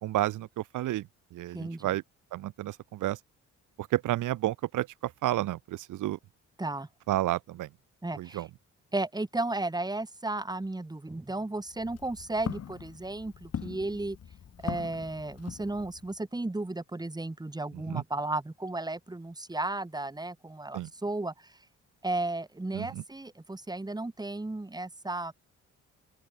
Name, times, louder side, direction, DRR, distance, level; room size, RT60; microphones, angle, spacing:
voice 1, 0.0-2.0 2.3-3.2 3.8-6.2 7.1-7.7 8.1-8.5 17.7-18.0 20.7-20.9 22.7-23.0, right 15 dB, 85° right, 3.1 m, -31 dB
voice 2, 1.5-1.9 6.6-6.9 8.0-8.4 8.9-14.2 14.6-21.6 22.0-25.3, right 2 dB, 15° right, 4.5 m, -34 dB
Walk footsteps, 11.7-16.2, left 8 dB, 55° left, 4.5 m, -41 dB
cardioid pair, 90°, 30 cm